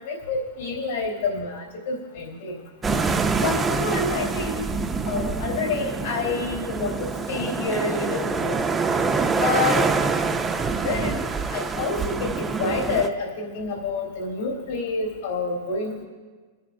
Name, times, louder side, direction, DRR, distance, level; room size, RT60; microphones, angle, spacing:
voice 1, 0.0-2.5 3.4-4.7 5.1-8.6 9.3-9.9 10.8-11.2 11.5-16.0, left 3 dB, 70° left, 0 dB, 3.3 m, -28 dB
sound 1, 2.8-13.1, right 4 dB, 10° right, 0.4 m, -25 dB
27.0 x 10.5 x 2.6 m, 1.4 s
supercardioid pair, 170°, 0 cm